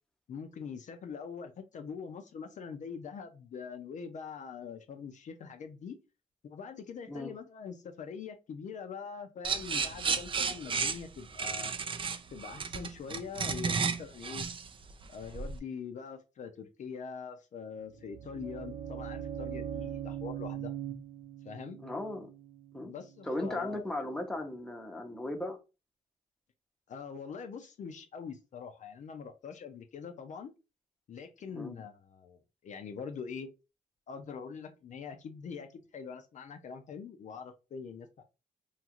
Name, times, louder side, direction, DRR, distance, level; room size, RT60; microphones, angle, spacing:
voice 1, 0.3-6.0 6.4-11.7 12.3-14.5 15.1-20.7 21.4-21.8 22.8-23.9 26.9-30.5 31.1-33.5 34.1-38.2, left 6 dB, 60° left, 6 dB, 0.4 m, -43 dB
sound 1, 9.4-15.6, right 5 dB, 35° right, 0.4 m, -33 dB
sound 2, 17.8-23.7, right 9 dB, 80° right, 0.7 m, -41 dB
voice 2, 21.8-22.3 22.7-22.9 23.2-25.6 31.5-31.8, left 1 dB, 5° left, 2 dB, 0.7 m, -36 dB
2.9 x 2.4 x 2.8 m, 0.28 s
cardioid pair, 110°, 15 cm